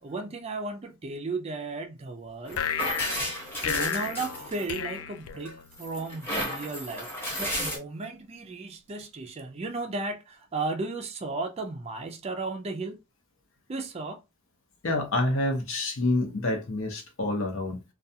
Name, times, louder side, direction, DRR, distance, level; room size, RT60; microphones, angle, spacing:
voice 1, 0.0-2.6 3.6-7.1 7.4-13.0 13.7-14.2, right 3 dB, 30° right, 0.3 m, -35 dB
sound 1, 2.5-5.9, left 9 dB, 75° left, 0.3 m, -33 dB
sound 2, 2.5-5.0 5.4-7.8, equal, 10° left, 1.0 m, -33 dB
voice 2, 14.8-17.8, left 2 dB, 60° left, 0.7 m, -27 dB
2.3 x 2.3 x 2.7 m
head